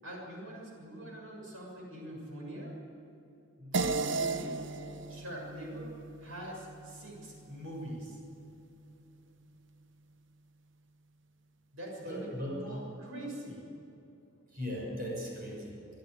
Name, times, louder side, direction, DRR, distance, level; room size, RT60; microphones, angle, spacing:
voice 1, 0.0-2.8 3.6-4.6 5.1-8.2 11.7-13.7, right 1 dB, 90° right, -1 dB, 6.6 m, -43 dB
sound 1, 3.7-8.5, right 3 dB, 65° right, 0.8 m, -37 dB
voice 2, 12.0-12.8 14.5-15.8, equal, 45° right, -2 dB, 6.4 m, -38 dB
25.0 x 12.0 x 9.6 m, 2.8 s
head